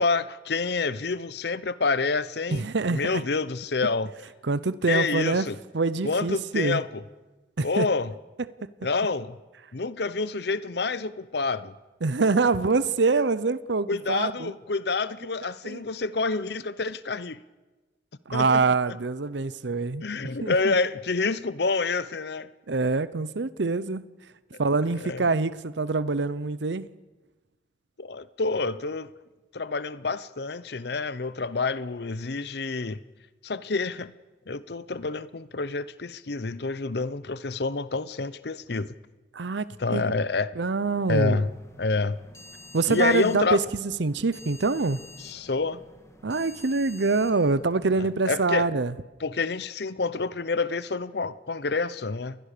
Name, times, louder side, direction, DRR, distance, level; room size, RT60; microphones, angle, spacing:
voice 1, 0.0-2.7 2.9-4.1 4.9-5.6 6.0-7.0 7.6-8.1 8.8-9.4 9.7-11.7 13.9-17.4 18.3-19.0 20.0-22.5 24.5-24.6 25.0-25.2 28.0-29.1 29.5-33.0 33.4-34.1 34.5-39.0 39.8-40.5 41.1-41.5 41.8-42.2 42.9-43.6 45.2-45.8 48.0-48.7 49.2-52.4, left 4 dB, 65° left, 0.7 m, -28 dB
voice 2, 2.5-3.2 4.4-5.5 5.7-6.8 7.6-7.9 12.0-14.5 15.6-15.8 18.3-20.1 20.4-20.7 22.7-24.0 24.6-26.9 39.3-40.0 40.6-41.4 42.7-45.0 46.2-48.9, right 3 dB, 75° right, 0.7 m, -25 dB
sound 1, 40.9-48.2, left 1 dB, 15° left, 2.0 m, -49 dB
28.0 x 21.0 x 6.7 m
head